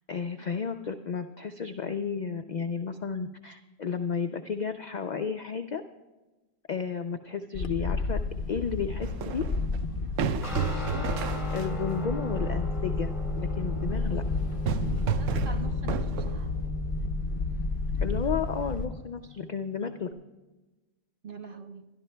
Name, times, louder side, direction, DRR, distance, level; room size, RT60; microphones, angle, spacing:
voice 1, 0.1-5.8 6.7-8.2 8.5-9.4 11.5-14.2 18.0-20.1, left 6 dB, 65° left, 7 dB, 0.4 m, -32 dB
Wind, 7.5-18.9, left 4 dB, 50° left, 0.9 m, -31 dB
sound 1, 9.0-11.9 14.3-16.7, right 8 dB, 80° right, 0.9 m, -32 dB
Guitar, 10.4-20.1, equal, 35° left, 2.8 m, -38 dB
voice 2, 15.2-16.5 21.2-21.9, right 4 dB, 50° right, 6 dB, 0.9 m, -43 dB
23.0 x 12.0 x 2.2 m, 1.1 s
omnidirectional pair, 1.3 m